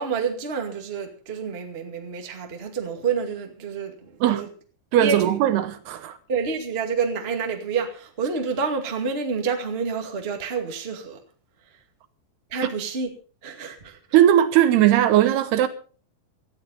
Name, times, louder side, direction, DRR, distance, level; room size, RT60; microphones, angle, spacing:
voice 1, 0.0-4.5 5.0-5.4 6.3-11.2 12.5-13.1 13.4-14.0, right 5 dB, 35° right, 1.0 m, -28 dB
voice 2, 4.9-6.2 12.6-12.7 14.1-15.7, right 11 dB, 75° right, 2.7 m, -18 dB
18.5 x 13.5 x 4.1 m
omnidirectional pair, 5.2 m